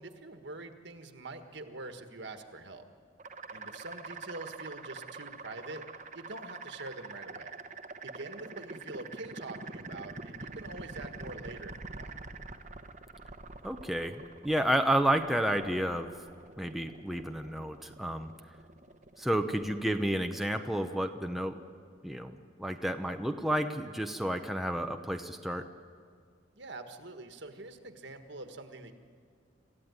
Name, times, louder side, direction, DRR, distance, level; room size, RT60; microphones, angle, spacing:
voice 1, 0.0-2.8 3.5-5.8 6.1-7.6 8.0-12.1 26.5-28.9, right 2 dB, 60° right, 7 dB, 1.6 m, -45 dB
sound 1, 3.2-21.9, right 3 dB, 40° right, 1.1 m, -46 dB
voice 2, 13.6-16.1 16.6-18.3 19.2-21.6 22.0-25.6, right 1 dB, ahead, 5 dB, 0.8 m, -31 dB
27.0 x 15.0 x 9.6 m, 2.1 s
head